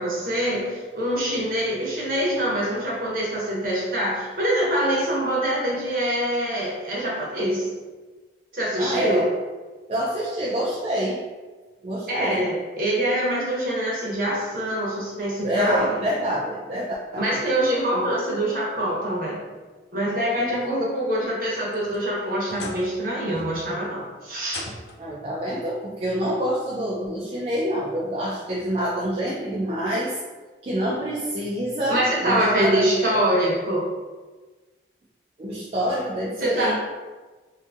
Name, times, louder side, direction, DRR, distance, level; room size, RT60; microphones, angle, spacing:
voice 1, 0.0-7.7 8.5-9.3 12.1-15.9 17.2-19.4 19.9-24.6 31.9-33.8 36.4-36.7, right 1 dB, 50° right, -5 dB, 0.8 m, -24 dB
voice 2, 8.8-9.3 9.9-11.2 11.8-12.4 15.4-17.4 20.4-20.7 25.0-30.2 30.6-33.2 35.4-36.7, equal, 35° right, -7 dB, 0.4 m, -27 dB
sound 1, 21.4-23.0 23.3-23.8 24.5-25.2 26.3-26.4 27.1-27.2 28.7-28.8, left 2 dB, 65° left, 0.4 m, -40 dB
2.6 x 2.5 x 2.6 m, 1.3 s
head